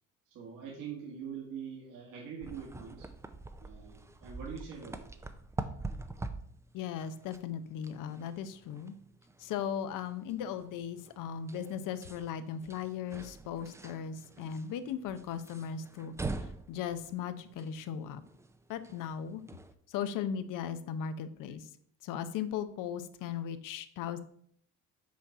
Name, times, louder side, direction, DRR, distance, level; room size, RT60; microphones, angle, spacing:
voice 1, 0.3-3.1 3.6-5.1, right 7 dB, 75° right, -3 dB, 1.8 m, -43 dB
sound 1, 2.4-19.7, right 3 dB, 10° right, 0.4 m, -45 dB
voice 2, 6.7-8.9 9.4-16.1 16.4-18.2 18.7-19.4 19.9-21.7 22.0-24.2, left 8 dB, 75° left, 11 dB, 0.7 m, -37 dB
6.3 x 4.1 x 4.7 m, 0.63 s
cardioid pair, 115°, 32 cm